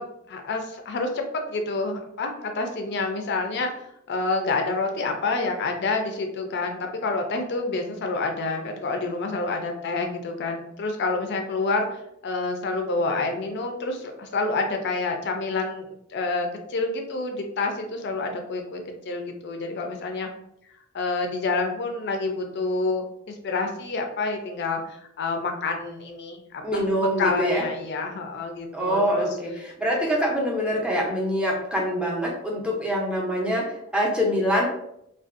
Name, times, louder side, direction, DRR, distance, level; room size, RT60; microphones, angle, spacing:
voice 1, 0.0-11.9 12.2-20.3 20.9-29.3, left 3 dB, 55° left, 4 dB, 0.4 m, -28 dB
voice 2, 26.6-27.6 28.7-34.7, equal, 5° right, -2 dB, 0.5 m, -25 dB
2.5 x 2.2 x 2.4 m, 0.78 s
head